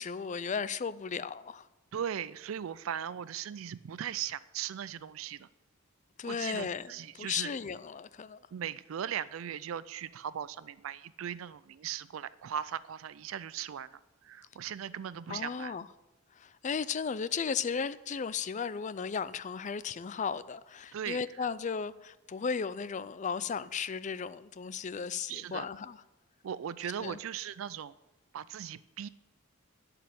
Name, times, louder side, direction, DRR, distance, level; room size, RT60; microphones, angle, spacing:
voice 1, 0.0-1.6 6.2-6.8 7.1-8.4 15.3-15.9 16.4-26.0 27.0-27.2, left 6 dB, 35° left, 16 dB, 0.4 m, -35 dB
voice 2, 1.9-5.5 6.2-7.5 8.5-15.7 20.9-21.5 25.3-25.7 26.4-27.9 28.3-29.1, right 9 dB, 75° right, 17 dB, 0.4 m, -38 dB
12.0 x 5.4 x 8.8 m, 1.1 s
head